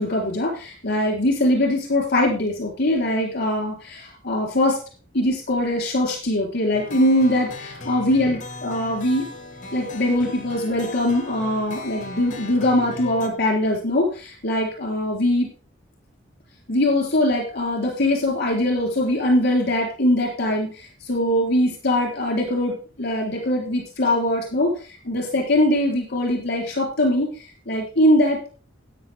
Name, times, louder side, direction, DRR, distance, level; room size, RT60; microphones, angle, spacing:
voice 1, 0.0-4.8 5.1-9.2 9.7-15.5 16.7-24.7 25.0-28.5, left 1 dB, 55° left, -1 dB, 3.9 m, -22 dB
sound 1, 6.7-13.3, left 2 dB, 40° left, 2.3 m, -37 dB
13.0 x 9.1 x 3.6 m, 0.36 s
head